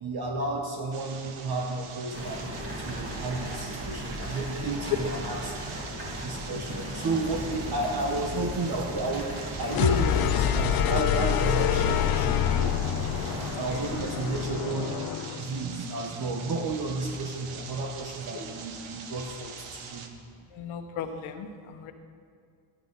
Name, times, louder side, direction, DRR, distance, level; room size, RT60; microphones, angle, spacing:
voice 1, 0.0-2.5 2.8-5.5 6.2-9.3 9.6-12.7 13.6-14.9 15.4-19.5 19.9-20.0, right 2 dB, 50° right, 1 dB, 1.2 m, -32 dB
sound 1, 0.9-20.1, right 5 dB, 75° right, 1.2 m, -43 dB
sound 2, 2.1-14.4, equal, 25° right, 2.4 m, -37 dB
sound 3, 9.7-15.5, left 11 dB, 50° left, 0.5 m, -26 dB
voice 2, 13.4-13.9 20.5-21.9, left 7 dB, 75° left, 5 dB, 1.0 m, -38 dB
13.0 x 9.3 x 4.0 m, 2.3 s
cardioid pair, 105°, 49 cm